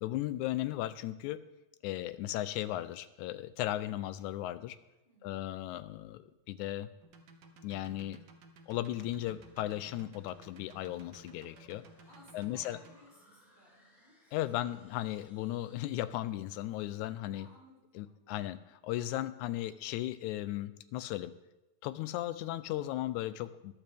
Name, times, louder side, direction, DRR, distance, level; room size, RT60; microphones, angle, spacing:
voice 1, 0.0-1.4 1.8-4.8 5.2-6.9 7.6-8.2 8.7-11.8 12.3-12.8 14.3-17.5 18.0-18.6 18.8-21.3 21.8-23.7, left 14 dB, 85° left, 14 dB, 2.0 m, -36 dB
voice 2, 5.0-5.4 12.0-14.4 17.3-18.5, equal, 20° left, -7 dB, 4.8 m, -60 dB
sound 1, 7.0-12.9, right 3 dB, 60° right, 1.3 m, -56 dB
sound 2, 8.8-16.7, right 1 dB, ahead, 4.5 m, -65 dB
14.5 x 11.5 x 3.4 m, 1.0 s
omnidirectional pair, 3.4 m